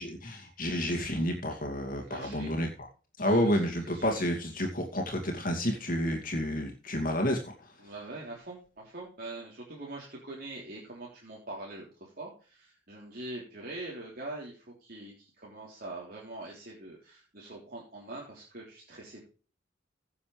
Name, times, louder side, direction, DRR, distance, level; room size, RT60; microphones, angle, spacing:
voice 1, 0.0-2.7 3.2-7.5, equal, 45° left, 2 dB, 2.5 m, -30 dB
voice 2, 2.0-2.5 3.2-3.6 3.9-4.2 7.8-19.2, right 2 dB, 50° right, -4 dB, 3.7 m, -43 dB
17.0 x 7.1 x 3.3 m, 0.37 s
head